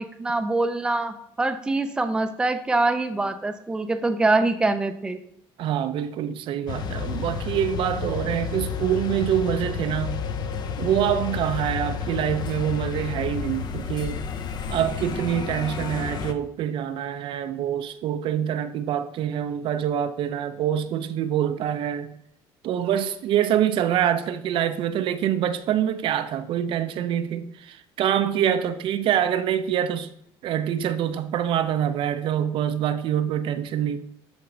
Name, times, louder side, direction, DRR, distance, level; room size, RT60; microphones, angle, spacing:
voice 1, 0.0-5.2, right 2 dB, 10° right, 0.5 m, -24 dB
voice 2, 5.6-10.2 10.8-14.2 14.7-22.1 22.6-30.1 30.4-34.0, right 10 dB, 55° right, 0.6 m, -25 dB
sound 1, 6.7-16.3, left 6 dB, 45° left, 0.7 m, -31 dB
12.5 x 4.4 x 3.8 m
cardioid pair, 145°, 10 cm